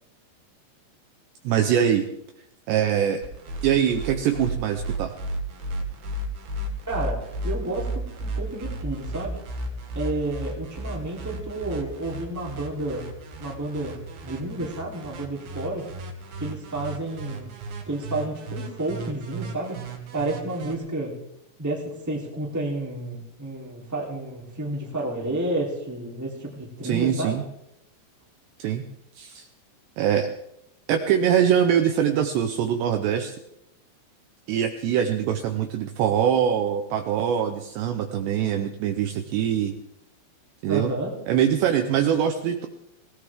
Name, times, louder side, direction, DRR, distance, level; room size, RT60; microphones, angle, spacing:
voice 1, 1.4-2.1 2.7-3.2 3.6-5.1 26.8-27.4 28.6-28.9 29.2-29.5 30.0-30.3 30.9-33.4 34.5-39.7 40.6-40.9 41.3-42.7, right 9 dB, 75° right, 6 dB, 2.7 m, -23 dB
sound 1, 3.2-20.7, right 1 dB, 55° right, 3.3 m, -34 dB
voice 2, 6.9-9.4 9.9-13.1 13.4-15.9 16.4-19.8 20.1-21.2 21.6-27.4 40.7-41.1, right 2 dB, 5° right, -2 dB, 2.2 m, -31 dB
20.0 x 18.0 x 3.7 m, 0.80 s
omnidirectional pair, 5.7 m